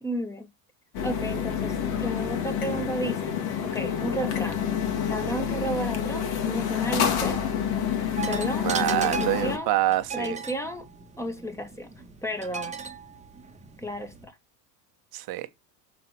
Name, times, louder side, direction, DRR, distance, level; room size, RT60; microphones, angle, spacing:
voice 1, 0.0-0.5 1.0-3.3 3.6-4.6 5.1-7.4 8.3-8.7 9.0-9.7 10.1-10.9 11.2-11.9 12.2-12.7 13.8-14.3, right 1 dB, 5° left, 1.7 m, -33 dB
sound 1, 0.9-9.6, left 8 dB, 50° left, 1.9 m, -28 dB
sound 2, 8.2-14.2, right 6 dB, 15° right, 1.5 m, -37 dB
voice 2, 8.6-10.4 15.1-15.5, right 15 dB, 45° right, 1.2 m, -26 dB
6.2 x 6.0 x 4.7 m
hypercardioid pair, 90°, 50 cm